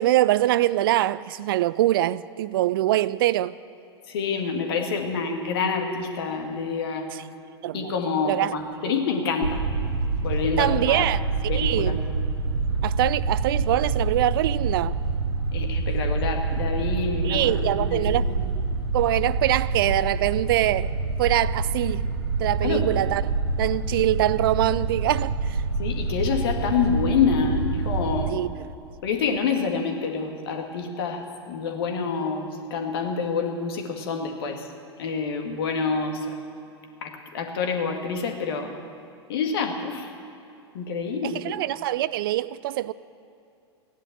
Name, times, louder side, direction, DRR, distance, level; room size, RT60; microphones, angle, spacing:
voice 1, 0.0-3.6 7.1-7.2 7.6-7.9 8.2-8.5 8.8-9.0 10.6-12.0 12.8-15.0 17.2-18.3 18.9-20.9 21.2-22.0 22.4-23.2 23.6-25.6 28.3-28.5 41.2-42.9, right 14 dB, 55° right, 0.4 m, -24 dB
voice 2, 4.1-7.1 7.7-9.6 10.2-11.1 11.5-12.0 15.5-18.0 22.6-22.8 25.8-28.4 29.0-34.7 35.0-36.3 37.0-38.7 39.3-40.1 40.7-41.5, left 5 dB, 60° left, 2.0 m, -27 dB
sound 1, 9.4-28.3, right 3 dB, 75° right, 1.0 m, -26 dB
16.5 x 11.0 x 7.5 m
figure-of-eight pair, 95°, 14 cm